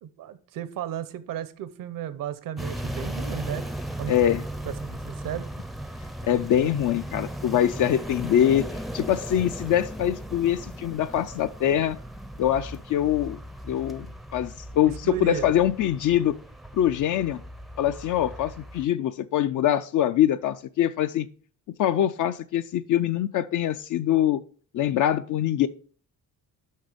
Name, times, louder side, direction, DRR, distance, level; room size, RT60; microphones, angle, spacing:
voice 1, 0.0-3.7 4.0-4.2 4.6-5.4 15.0-15.5, right 10 dB, 75° right, 0.8 m, -34 dB
sound 1, 2.6-18.9, right 1 dB, ahead, 0.4 m, -37 dB
voice 2, 4.1-4.4 6.2-12.0 12.4-13.4 13.7-14.1 14.3-16.3 16.7-17.4 17.8-21.3 21.8-24.4 24.7-25.7, left 11 dB, 60° left, 0.5 m, -24 dB
6.5 x 6.1 x 5.0 m
cardioid pair, 130°, 34 cm